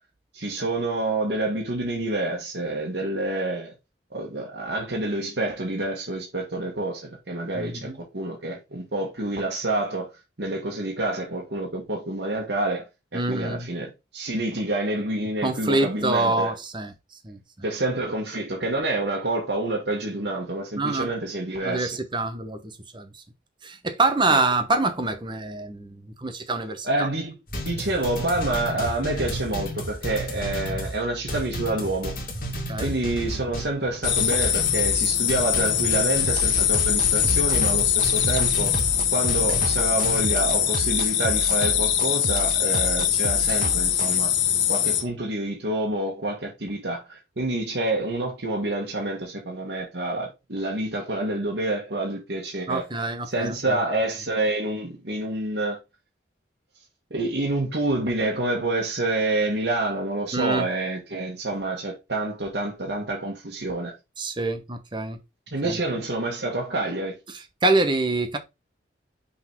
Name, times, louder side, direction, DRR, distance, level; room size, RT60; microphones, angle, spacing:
voice 1, 0.3-3.7 4.1-10.1 10.4-12.8 13.1-16.5 17.6-22.0 24.3-24.4 26.8-27.3 27.6-32.1 32.8-38.7 39.1-44.3 44.7-52.8 53.2-55.8 57.1-63.9 65.5-67.1, right 2 dB, 70° right, 1.6 m, -28 dB
voice 2, 7.5-8.0 13.1-13.7 15.4-16.9 17.2-17.4 20.8-21.1 21.6-23.2 23.6-27.1 32.7-32.9 52.7-53.8 60.3-60.7 64.2-65.2 65.6-65.8 67.3-68.4, right 2 dB, 25° right, 0.9 m, -26 dB
sound 1, 27.5-40.2, equal, 50° left, 2.0 m, -32 dB
sound 2, 34.0-45.0, left 10 dB, 80° left, 1.0 m, -23 dB
sound 3, 36.2-44.2, right 5 dB, 45° right, 0.3 m, -32 dB
5.9 x 4.0 x 4.5 m
head